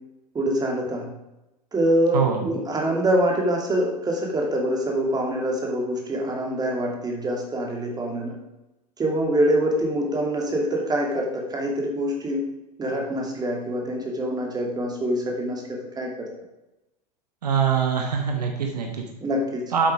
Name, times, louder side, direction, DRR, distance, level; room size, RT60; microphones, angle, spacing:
voice 1, 0.3-1.1 1.7-8.3 9.0-12.4 12.8-16.3 19.2-19.6, right 1 dB, 20° right, 0 dB, 2.5 m, -25 dB
voice 2, 17.4-19.0 19.7-19.9, right 6 dB, 70° right, 3 dB, 1.3 m, -23 dB
8.3 x 8.0 x 4.9 m, 0.96 s
figure-of-eight pair, 85°, 21 cm